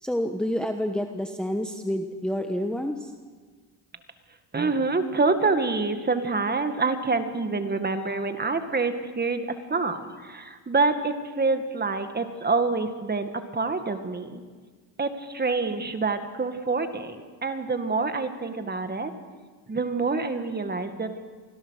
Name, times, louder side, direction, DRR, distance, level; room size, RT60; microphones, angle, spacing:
voice 1, 0.0-3.1, equal, ahead, 5 dB, 1.2 m, -28 dB
voice 2, 4.5-14.4 15.0-19.1 19.7-21.1, right 3 dB, 20° right, 8 dB, 2.0 m, -26 dB
25.0 x 17.0 x 6.6 m, 1.5 s
cardioid pair, 95°, 44 cm